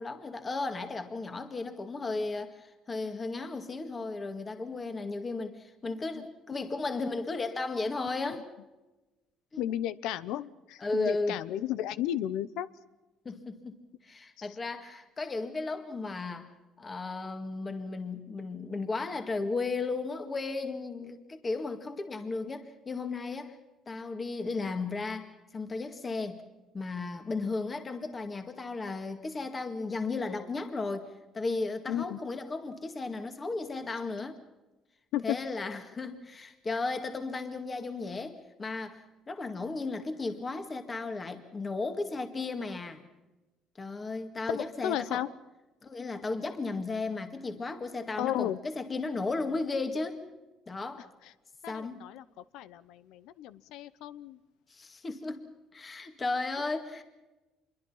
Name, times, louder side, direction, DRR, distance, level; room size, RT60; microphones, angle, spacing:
voice 1, 0.0-8.5 9.5-9.7 10.8-11.4 13.3-13.8 14.0-16.5 16.8-23.6 23.9-26.4 26.7-31.1 31.3-34.4 35.2-43.0 43.8-45.3 45.8-50.2 50.7-51.1 51.7-52.0 54.7-57.0, left 3 dB, 25° left, 7 dB, 1.9 m, -35 dB
voice 2, 9.6-12.7 31.9-32.2 35.1-35.4 44.5-45.3 48.2-48.6 51.6-52.2 52.5-54.4, left 12 dB, 85° left, 16 dB, 0.9 m, -33 dB
26.5 x 23.0 x 5.7 m, 1.1 s
cardioid pair, 145°, 0 cm